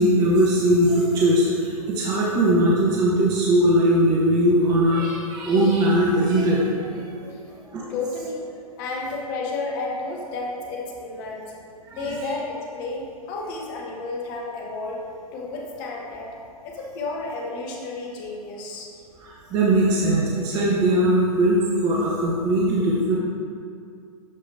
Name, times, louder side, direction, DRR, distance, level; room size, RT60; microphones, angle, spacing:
voice 1, 0.0-6.9 7.7-7.8 11.9-12.1 19.2-23.2, right 1 dB, 20° right, -4 dB, 0.9 m, -20 dB
voice 2, 7.9-8.4 8.8-11.5 11.9-15.0 15.3-16.3 16.6-18.9, left 3 dB, 30° left, -1 dB, 1.2 m, -31 dB
11.5 x 4.9 x 2.7 m, 2.3 s
figure-of-eight pair, 115°, 19 cm